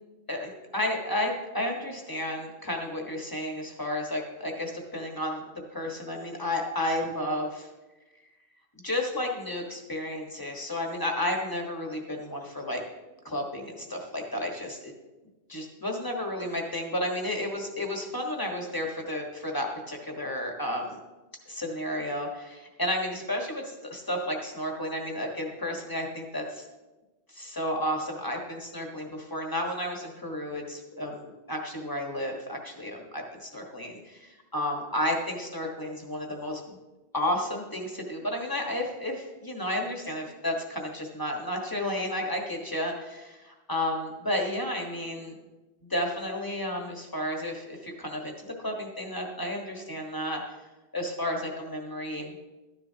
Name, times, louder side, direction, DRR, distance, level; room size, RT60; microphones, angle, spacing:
voice 1, 0.3-5.4 5.7-7.7 8.8-12.8 13.2-14.9 15.5-21.0 21.5-26.6 27.3-36.6 37.1-45.4 45.8-50.4 50.9-52.3, left 1 dB, 20° left, 1 dB, 1.4 m, -32 dB
13.5 x 10.5 x 2.8 m, 1.1 s
omnidirectional pair, 1.1 m